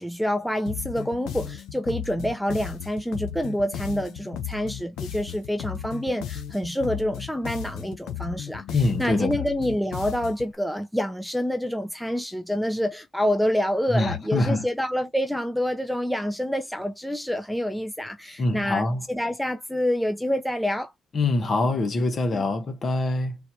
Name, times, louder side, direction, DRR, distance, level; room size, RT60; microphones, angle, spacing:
voice 1, 0.0-20.9, equal, ahead, 0.7 m, -27 dB
sound 1, 0.7-10.5, left 10 dB, 85° left, 0.8 m, -35 dB
voice 2, 8.7-9.3 13.9-14.6 18.4-19.0 21.1-23.4, left 2 dB, 45° left, 1.2 m, -24 dB
4.0 x 2.6 x 2.9 m
cardioid pair, 90°, 0 cm